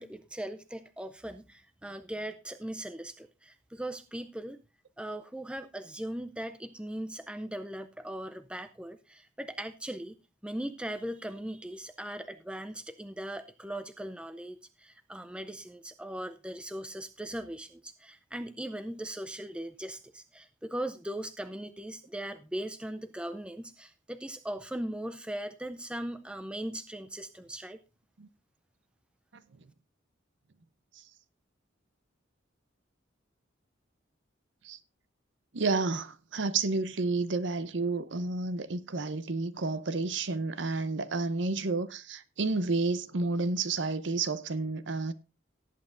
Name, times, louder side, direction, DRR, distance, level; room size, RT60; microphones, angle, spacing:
voice 1, 0.0-4.6 5.0-10.2 10.4-27.8, right 1 dB, 5° right, 0.4 m, -39 dB
voice 2, 35.5-45.1, right 3 dB, 65° right, 0.7 m, -30 dB
18.0 x 8.5 x 2.5 m
head